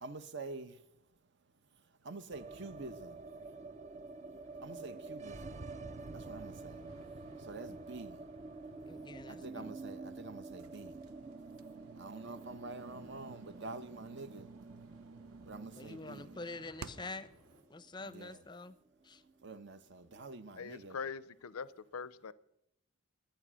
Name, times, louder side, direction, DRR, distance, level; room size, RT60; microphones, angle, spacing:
voice 1, 0.0-0.8 2.0-3.2 4.6-5.4 6.1-6.8 7.4-8.2 9.3-11.0 12.0-14.5 15.5-16.3 18.0-18.4 19.4-21.0, right 3 dB, 55° right, 0.9 m, -47 dB
sound 1, 2.3-18.4 18.7-18.8 19.0-19.8, right 3 dB, 35° right, 0.6 m, -49 dB
sound 2, 4.4-17.6, equal, 70° right, 3.0 m, -64 dB
voice 2, 8.9-9.7 15.8-17.3 17.7-18.8 19.0-19.2, left 3 dB, 20° left, 0.6 m, -46 dB
sound 3, 10.6-17.3, right 4 dB, 85° right, 0.8 m, -52 dB
voice 3, 20.6-22.3, left 5 dB, 80° left, 0.5 m, -42 dB
22.5 x 9.3 x 6.2 m
head